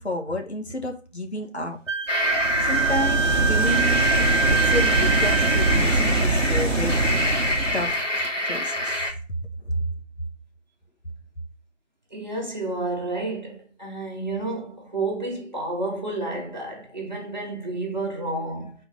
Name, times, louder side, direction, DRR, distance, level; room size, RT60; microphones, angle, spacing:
voice 1, 0.0-1.8 2.6-4.2 4.4-7.0 7.7-9.0 9.3-9.4 9.6-9.8, left 1 dB, 60° left, 1.4 m, -30 dB
Wind instrument woodwind instrument, 1.9-5.8, right 5 dB, 80° right, 0.8 m, -25 dB
sound 1, 2.1-3.1 3.5-9.1, left 1 dB, 75° left, 2.0 m, -26 dB
sound 2, 2.2-8.0, right 2 dB, 60° right, 1.3 m, -24 dB
voice 2, 12.1-18.7, right 2 dB, 35° right, 1.9 m, -30 dB
6.8 x 4.4 x 4.0 m
figure-of-eight pair, 170°, 37 cm